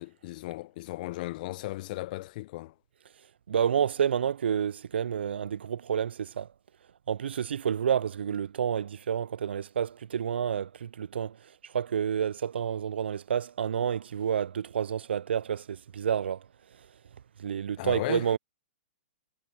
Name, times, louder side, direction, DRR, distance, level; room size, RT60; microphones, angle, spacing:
voice 1, 0.0-2.7 17.8-18.3, left 18 dB, 50° left, 0.8 m, -36 dB
voice 2, 3.5-6.5 7.1-11.4 11.6-16.4 17.4-18.4, right 8 dB, 75° right, 0.5 m, -29 dB
hypercardioid pair, 120°, 6 cm